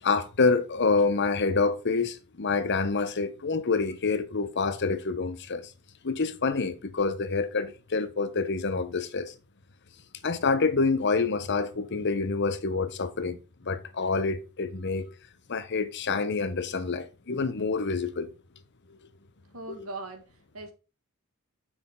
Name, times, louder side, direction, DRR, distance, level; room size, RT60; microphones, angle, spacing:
voice 1, 0.0-5.7 6.0-9.3 10.2-15.1 15.5-18.3 19.8-19.9, left 4 dB, 55° left, 0.9 m, -27 dB
voice 2, 19.5-20.7, right 2 dB, 80° right, 1.8 m, -40 dB
6.8 x 6.1 x 3.7 m
head